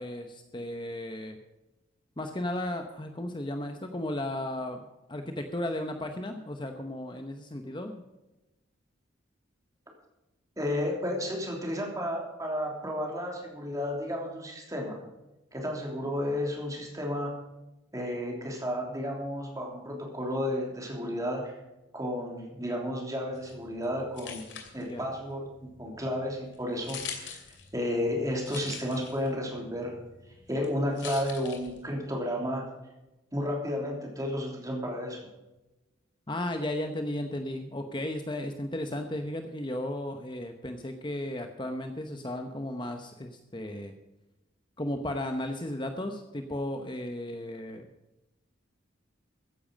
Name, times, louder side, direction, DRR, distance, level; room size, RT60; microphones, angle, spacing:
voice 1, 0.0-1.4 2.2-8.0 24.8-25.0 36.3-43.9 44.8-47.9, left 1 dB, 25° left, 6 dB, 0.9 m, -35 dB
voice 2, 10.6-15.0 15.5-17.4 17.9-21.6 21.9-24.5 24.7-27.4 27.7-30.0 30.5-32.7 33.3-35.2, left 1 dB, 20° right, 0 dB, 3.2 m, -32 dB
sound 1, 23.4-32.1, left 7 dB, 70° left, 2.7 m, -45 dB
14.5 x 10.5 x 5.2 m, 1.0 s
head